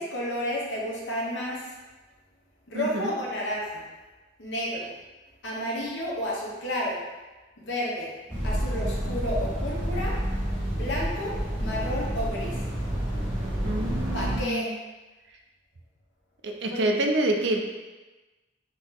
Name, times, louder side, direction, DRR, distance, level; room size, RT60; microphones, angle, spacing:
voice 1, 0.0-1.8 2.7-3.9 4.4-4.9 5.4-7.0 7.6-8.1 8.4-10.2 10.7-12.7 14.1-14.7 16.7-16.8, equal, 80° left, -4 dB, 1.1 m, -31 dB
voice 2, 2.7-3.2 13.6-14.7 16.4-17.7, right 1 dB, 70° right, 2 dB, 0.5 m, -27 dB
sound 1, 8.3-14.4, equal, 10° right, 1.3 m, -29 dB
3.8 x 3.0 x 3.8 m, 1.2 s
head